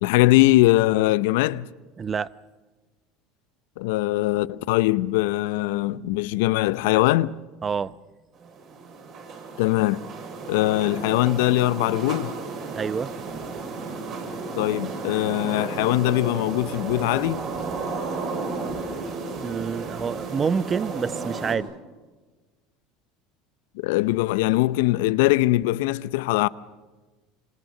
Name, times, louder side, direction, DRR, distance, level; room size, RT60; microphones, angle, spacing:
voice 1, 0.0-1.6 3.8-7.4 9.6-10.0 10.5-12.3 14.6-17.4 23.8-26.5, left 17 dB, 75° left, 0.7 m, -21 dB
voice 2, 2.0-2.3 7.6-8.0 12.7-13.1 18.3-21.7, right 6 dB, 30° right, 0.7 m, -28 dB
sound 1, 8.3-21.5, right 4 dB, 50° right, 7.9 m, -33 dB
27.0 x 26.0 x 6.7 m
hypercardioid pair, 90°, 0 cm